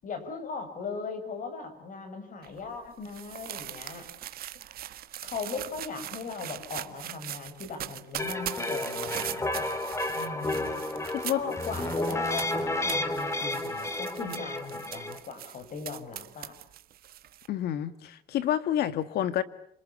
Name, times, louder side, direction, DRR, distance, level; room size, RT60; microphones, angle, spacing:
voice 1, 0.0-4.1 5.2-9.7 10.1-10.7 11.3-16.5, left 4 dB, 50° left, 9 dB, 7.2 m, -38 dB
sound 1, 2.4-17.5, right 12 dB, 65° right, 1.6 m, -41 dB
sound 2, 8.2-15.2, left 2 dB, 15° left, 3.1 m, -31 dB
voice 2, 17.5-19.4, left 11 dB, 70° left, 12 dB, 2.0 m, -28 dB
28.5 x 26.5 x 7.3 m, 0.71 s
cardioid pair, 110°, 17 cm